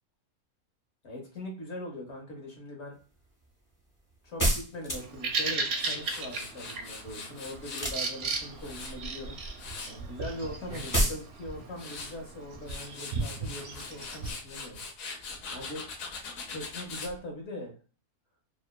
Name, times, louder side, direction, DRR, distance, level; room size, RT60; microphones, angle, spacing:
voice 1, 1.0-3.0 4.2-9.4 9.8-14.8 15.5-15.8 16.5-17.7, left 1 dB, 55° left, 0 dB, 1.0 m, -41 dB
sound 1, 4.4-5.3 7.7-8.5 10.9-11.2, right 1 dB, 25° left, 0.4 m, -27 dB
Bird vocalization bird call bird song, 4.9-14.3, right 4 dB, 65° right, 0.7 m, -36 dB
Tools, 5.8-7.9 8.4-10.0 10.5-11.1 11.6-12.1 12.5-17.1, left 4 dB, 85° left, 1.0 m, -41 dB
2.9 x 2.0 x 2.2 m, 0.37 s
omnidirectional pair, 1.4 m